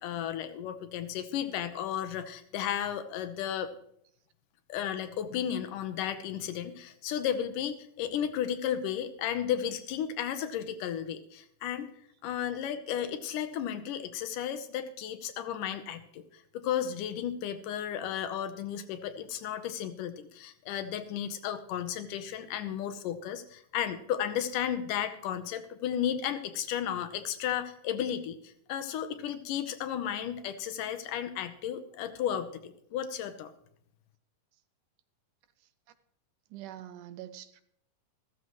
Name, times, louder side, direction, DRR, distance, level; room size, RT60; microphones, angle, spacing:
voice 1, 0.0-3.7 4.7-11.9 12.2-33.5, left 9 dB, 80° left, 10 dB, 2.4 m, -34 dB
voice 2, 36.5-37.6, right 12 dB, 80° right, 12 dB, 2.2 m, -44 dB
14.5 x 14.0 x 3.1 m, 0.70 s
omnidirectional pair, 3.8 m